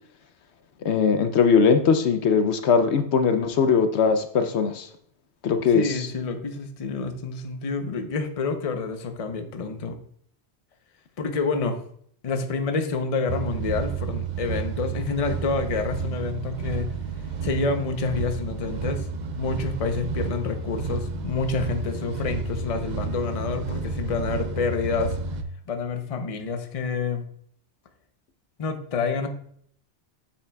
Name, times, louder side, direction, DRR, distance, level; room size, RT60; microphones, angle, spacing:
voice 1, 0.8-4.9 5.4-5.8, left 6 dB, 75° left, 8 dB, 0.9 m, -20 dB
voice 2, 5.7-10.0 11.2-11.8 12.2-16.9 17.4-19.1 19.4-25.2 25.7-27.3 28.6-29.3, left 4 dB, 40° left, 6 dB, 0.7 m, -28 dB
sound 1, 13.3-25.4, right 5 dB, 50° right, 0.6 m, -31 dB
8.5 x 7.1 x 2.2 m, 0.63 s
omnidirectional pair, 1.2 m